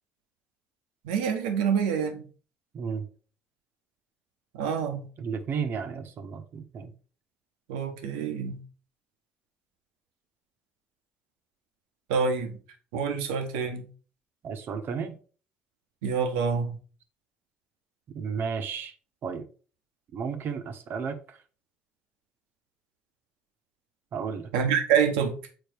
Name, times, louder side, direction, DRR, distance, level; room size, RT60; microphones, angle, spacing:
voice 1, 1.0-2.2 4.5-5.1 7.7-8.6 12.1-12.6 12.9-13.9 16.0-16.8 24.5-25.3, right 6 dB, 85° right, 1.3 m, -26 dB
voice 2, 2.7-3.1 5.2-6.9 14.4-15.2 18.1-18.9 19.2-19.5 20.1-21.4 24.1-24.5, right 6 dB, 55° right, 1.3 m, -33 dB
7.0 x 4.4 x 4.7 m
hypercardioid pair, 65°, 4 cm